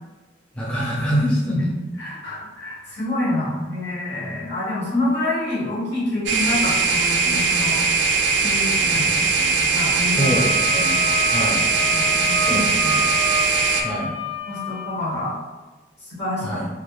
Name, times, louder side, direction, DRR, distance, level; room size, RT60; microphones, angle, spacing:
voice 1, 0.5-1.6 9.0-9.4 10.1-11.6 12.5-13.2 13.8-14.1 16.4-16.7, equal, 5° left, -6 dB, 0.3 m, -26 dB
voice 2, 1.2-7.8 8.4-9.0 9.6-10.2 11.0-11.1 11.9-13.0 14.4-15.3 16.1-16.6, left 1 dB, 65° left, -8 dB, 1.2 m, -27 dB
sound 1, 6.3-13.8, right 4 dB, 75° right, 0.4 m, -20 dB
Wind instrument woodwind instrument, 10.1-14.9, left 1 dB, 90° left, 0.6 m, -28 dB
2.4 x 2.3 x 2.9 m, 1.2 s
head